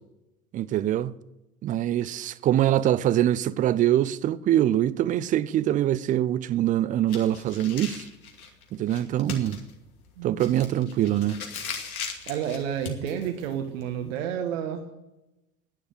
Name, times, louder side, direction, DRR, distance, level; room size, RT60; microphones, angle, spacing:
voice 1, 0.5-1.1 1.6-8.1 8.7-9.6 10.2-11.4, right 12 dB, 20° right, 0.4 m, -24 dB
sound 1, 7.1-14.2, left 5 dB, 75° left, 2.5 m, -39 dB
voice 2, 10.2-10.7 12.3-14.8, right 8 dB, 60° right, 1.5 m, -31 dB
11.5 x 10.0 x 6.8 m
figure-of-eight pair, 80°, 43 cm